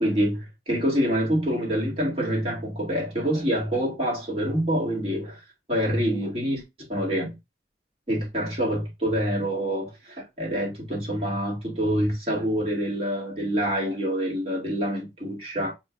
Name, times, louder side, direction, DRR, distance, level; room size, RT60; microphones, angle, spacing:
voice 1, 0.0-5.4 5.7-6.6 6.9-7.4 8.1-15.7, equal, 30° right, 2.1 m, -26 dB
6.7 x 2.6 x 2.5 m
head